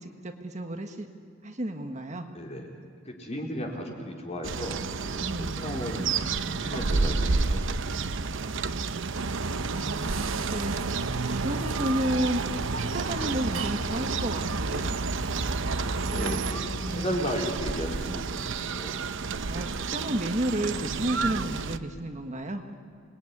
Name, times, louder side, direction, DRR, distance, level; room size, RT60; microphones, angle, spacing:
voice 1, 0.0-1.1 1.4-2.3 5.2-5.6 9.7-11.0 11.3-12.4 12.8-15.0 16.0-17.2 19.5-22.6, right 1 dB, 35° right, 5 dB, 1.5 m, -32 dB
voice 2, 2.3-2.7 3.0-6.1 6.5-8.2 16.1-19.0, equal, 35° left, 0 dB, 4.2 m, -35 dB
sound 1, 4.4-21.8, right 4 dB, 65° right, 0.8 m, -31 dB
sound 2, 9.1-16.5, right 3 dB, 90° right, 1.1 m, -32 dB
27.5 x 21.0 x 9.8 m, 2.1 s
head